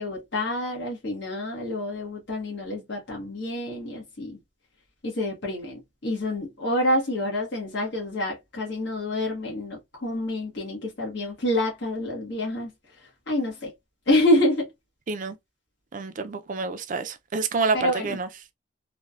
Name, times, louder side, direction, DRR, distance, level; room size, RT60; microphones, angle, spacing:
voice 1, 0.0-4.4 5.0-12.7 13.3-13.7 14.1-14.7 17.7-18.2, left 1 dB, 60° left, 1.1 m, -27 dB
voice 2, 15.9-18.3, right 4 dB, 40° right, 0.4 m, -28 dB
3.2 x 2.1 x 2.4 m
head